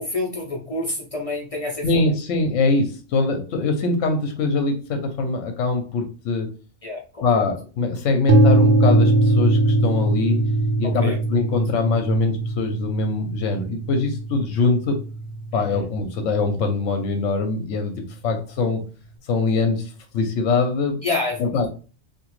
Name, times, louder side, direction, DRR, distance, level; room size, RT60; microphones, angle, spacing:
voice 1, 0.0-2.1 6.8-7.5 10.8-11.2 15.5-15.9 21.0-21.6, left 2 dB, 40° left, -2 dB, 0.5 m, -28 dB
voice 2, 1.8-6.5 7.2-10.4 10.8-15.1 15.5-18.9 19.3-21.0 21.4-21.7, left 3 dB, 80° left, 5 dB, 1.0 m, -23 dB
sound 1, 8.3-16.2, right 2 dB, 65° right, 0.8 m, -20 dB
2.9 x 2.4 x 3.0 m, 0.35 s
omnidirectional pair, 1.3 m